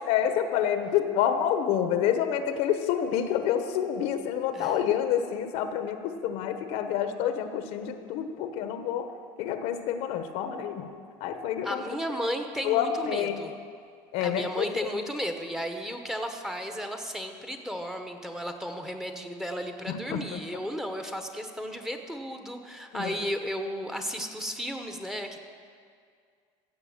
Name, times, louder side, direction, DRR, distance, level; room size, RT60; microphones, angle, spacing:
voice 1, 0.0-11.8 12.6-13.5 14.1-14.9 19.9-20.4 22.9-23.2, left 9 dB, 65° left, 8 dB, 1.0 m, -28 dB
voice 2, 11.6-13.5 14.2-25.4, equal, 5° right, 5 dB, 1.0 m, -34 dB
16.0 x 6.9 x 7.2 m, 2.1 s
supercardioid pair, 130°, 11 cm